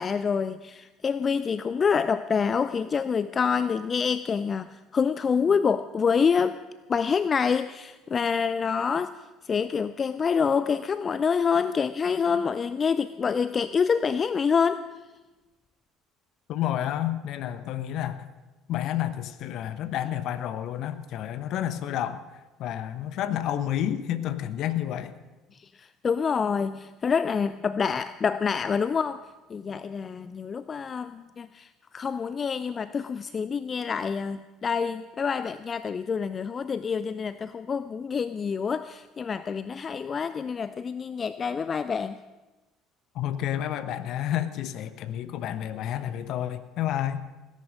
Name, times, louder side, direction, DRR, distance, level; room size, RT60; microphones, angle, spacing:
voice 1, 0.0-6.6 6.9-9.1 9.4-14.9 25.6-29.2 29.5-42.2, left 6 dB, 35° left, 15 dB, 0.5 m, -27 dB
voice 2, 16.5-18.3 18.7-22.2 22.6-25.1 43.1-47.2, left 11 dB, 55° left, 13 dB, 1.0 m, -30 dB
17.0 x 10.5 x 6.4 m, 1.2 s
figure-of-eight pair, 60°, 0 cm